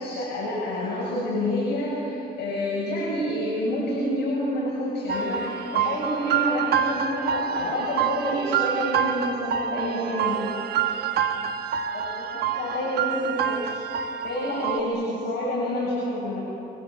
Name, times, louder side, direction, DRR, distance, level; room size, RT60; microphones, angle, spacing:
voice 1, 0.0-10.4 11.9-13.7 14.2-16.4, left 1 dB, 80° left, -6 dB, 7.4 m, -28 dB
sound 1, 5.1-14.8, right 8 dB, 65° right, 1.4 m, -27 dB
28.0 x 23.0 x 7.6 m, 2.8 s
cardioid pair, 150°, 17 cm